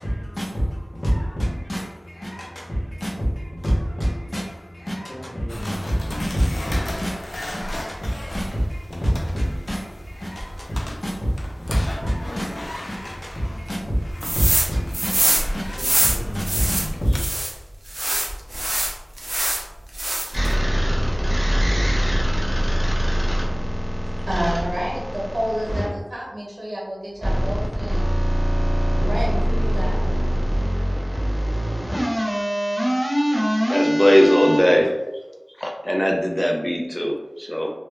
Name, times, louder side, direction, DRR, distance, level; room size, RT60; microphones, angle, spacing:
voice 1, 0.0-17.3, equal, 55° left, -4 dB, 0.7 m, -27 dB
sound 1, 5.5-17.2, left 1 dB, 80° left, 0.3 m, -35 dB
sound 2, 14.2-14.7 14.9-17.5 17.9-19.6 19.9-20.5, right 1 dB, 45° right, 0.5 m, -23 dB
sound 3, 20.3-25.9 27.2-34.6, equal, 10° right, 0.9 m, -22 dB
voice 2, 24.3-28.2 29.0-30.0 34.7-34.8, equal, 75° right, -5 dB, 1.0 m, -29 dB
voice 3, 33.7-34.9 35.6-37.7, equal, 15° left, 0 dB, 0.4 m, -20 dB
2.3 x 2.1 x 3.2 m, 1.0 s
wide cardioid pair, 55°, 0 cm